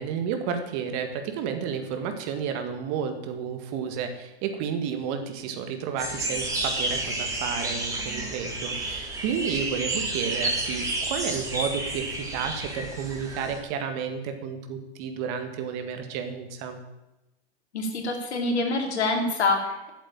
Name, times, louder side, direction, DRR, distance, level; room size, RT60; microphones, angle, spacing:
voice 1, 0.0-16.8, right 7 dB, 40° right, 7 dB, 1.8 m, -31 dB
sound 1, 6.0-13.6, right 2 dB, 10° right, 2.7 m, -31 dB
voice 2, 17.7-19.9, left 2 dB, 75° left, 2 dB, 2.9 m, -26 dB
8.9 x 7.3 x 8.8 m, 0.96 s
hypercardioid pair, 120°, 33 cm